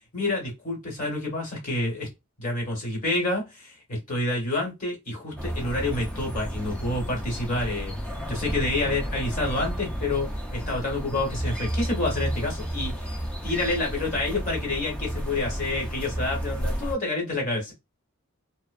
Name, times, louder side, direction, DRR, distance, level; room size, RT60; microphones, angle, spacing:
voice 1, 0.1-2.1 2.4-7.9 8.3-17.7, left 2 dB, 40° left, 0 dB, 1.1 m, -28 dB
sound 1, 5.4-17.0, equal, 5° left, 0.4 m, -32 dB
2.6 x 2.0 x 2.4 m, 0.22 s
head